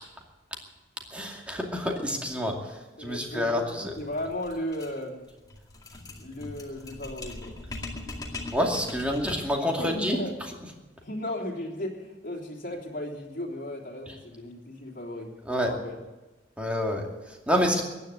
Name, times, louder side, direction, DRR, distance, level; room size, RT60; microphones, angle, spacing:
voice 1, 1.1-3.9 8.5-10.2 14.1-14.2 15.5-15.7 16.6-17.8, equal, 5° right, 0 dB, 2.4 m, -28 dB
voice 2, 3.0-5.2 6.2-7.5 9.8-10.3 11.0-15.3 15.6-16.0, left 1 dB, 50° left, -1 dB, 3.1 m, -35 dB
sound 1, 3.9-9.6, left 2 dB, 20° left, 2.3 m, -41 dB
15.5 x 10.5 x 8.3 m, 1.1 s
head